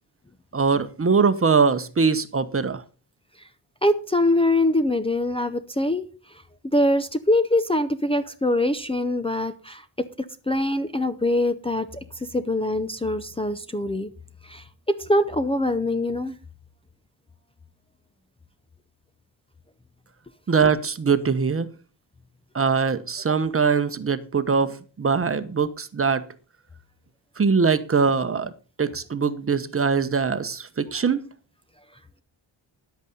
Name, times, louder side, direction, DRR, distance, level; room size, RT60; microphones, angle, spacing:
voice 1, 0.5-2.8 20.5-21.7 22.5-26.3 27.4-28.5 28.8-31.2, right 5 dB, 30° right, 1.0 m, -22 dB
voice 2, 3.8-6.4 6.7-9.8 10.5-14.1 14.4-16.4, left 1 dB, 10° left, 0.7 m, -23 dB
10.5 x 8.1 x 5.4 m
cardioid pair, 90°, 47 cm